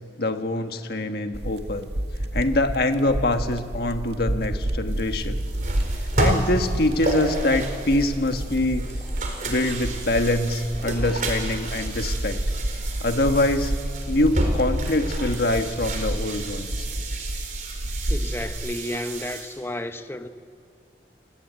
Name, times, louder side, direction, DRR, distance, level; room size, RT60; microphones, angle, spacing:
voice 1, 0.2-1.9 2.3-5.4 6.2-8.9 9.4-12.4 13.0-13.8 14.1-16.7, left 1 dB, 60° left, 1.6 m, -24 dB
sound 1, 1.3-18.5, right 1 dB, 75° right, 1.5 m, -30 dB
sound 2, 4.9-19.6, right 2 dB, 45° right, 4.1 m, -32 dB
sound 3, 7.6-10.4 10.8-10.9, right 3 dB, 30° right, 7.7 m, -49 dB
voice 2, 18.1-20.3, left 1 dB, 15° left, 0.9 m, -32 dB
28.5 x 19.0 x 9.1 m
head